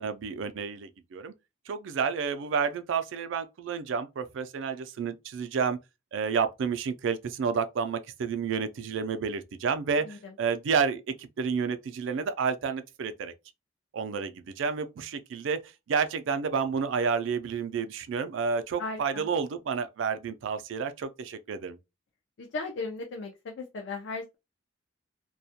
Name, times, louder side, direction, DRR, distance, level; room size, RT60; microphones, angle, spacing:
voice 1, 0.0-1.3 1.7-5.8 6.1-13.3 13.9-15.6 15.9-21.8, right 5 dB, 70° right, 0.3 m, -30 dB
voice 2, 18.8-19.3 22.4-24.3, left 3 dB, 65° left, 0.4 m, -36 dB
2.3 x 2.1 x 2.7 m
head